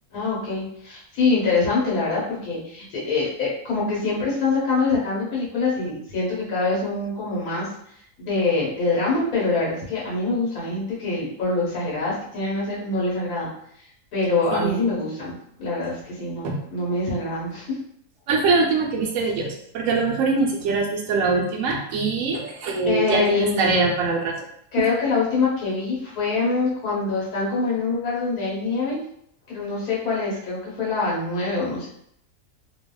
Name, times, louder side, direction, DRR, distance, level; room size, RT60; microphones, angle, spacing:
voice 1, 0.1-7.7 8.2-13.5 14.1-17.7 22.8-23.7 24.7-29.0 29.5-31.9, left 3 dB, 75° left, -5 dB, 1.4 m, -24 dB
voice 2, 14.5-14.8 16.4-16.6 18.3-24.5, right 3 dB, 70° right, 0 dB, 0.9 m, -23 dB
2.7 x 2.3 x 2.2 m, 0.71 s
omnidirectional pair, 1.6 m